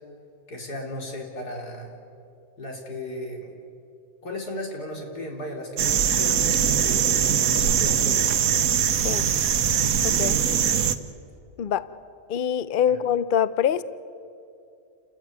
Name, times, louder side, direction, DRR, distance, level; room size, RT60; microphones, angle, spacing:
voice 1, 0.5-1.9 2.6-3.5 4.2-8.3 12.9-13.0, left 1 dB, 80° left, 0 dB, 4.1 m, -35 dB
sound 1, 5.8-10.9, right 8 dB, 65° right, 1.3 m, -22 dB
voice 2, 8.9-9.3 10.0-10.4 11.6-11.9 12.3-13.8, left 9 dB, 60° left, 16 dB, 0.5 m, -24 dB
29.5 x 14.5 x 9.4 m, 2.6 s
omnidirectional pair, 1.7 m